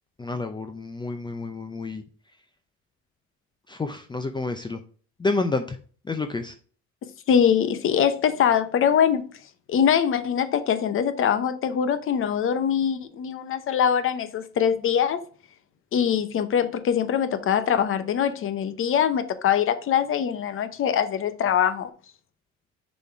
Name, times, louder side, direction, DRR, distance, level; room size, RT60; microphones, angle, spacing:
voice 1, 0.2-2.0 3.7-4.8 5.2-5.8 6.0-6.6, left 3 dB, 15° left, 0.6 m, -29 dB
voice 2, 7.3-9.3 9.7-15.2 15.9-21.9, left 8 dB, 45° left, 0.9 m, -23 dB
6.8 x 4.3 x 4.6 m
cardioid pair, 135°, 29 cm